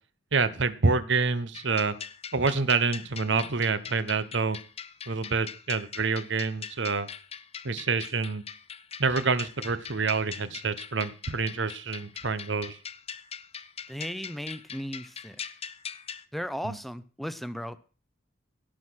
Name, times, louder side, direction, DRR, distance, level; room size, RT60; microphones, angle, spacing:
voice 1, 0.3-1.9 2.3-4.6 5.1-7.1 7.6-8.4 9.0-12.8 16.6-16.7, right 4 dB, 65° right, 1.0 m, -27 dB
sound 1, 1.5-16.2, left 7 dB, 30° left, 0.8 m, -42 dB
voice 2, 13.9-15.4 16.3-17.8, equal, ahead, 0.7 m, -36 dB
16.5 x 6.2 x 6.3 m
head